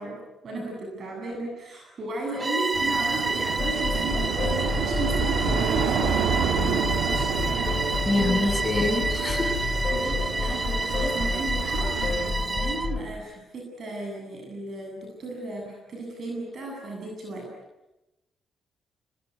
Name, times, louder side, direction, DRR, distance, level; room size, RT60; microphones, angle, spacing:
voice 1, 0.0-8.6 9.6-17.5, right 2 dB, 50° right, 1 dB, 7.7 m, -36 dB
Bowed string instrument, 2.3-13.0, right 3 dB, 25° right, 0.8 m, -29 dB
sound 1, 2.7-12.3, right 8 dB, 85° right, 2.3 m, -30 dB
sound 2, 3.6-13.1, left 3 dB, 45° left, 7.4 m, -30 dB
voice 2, 8.1-9.5, left 2 dB, 20° left, 3 dB, 7.3 m, -26 dB
28.5 x 19.5 x 9.7 m, 1.0 s
cardioid pair, 90°, 0 cm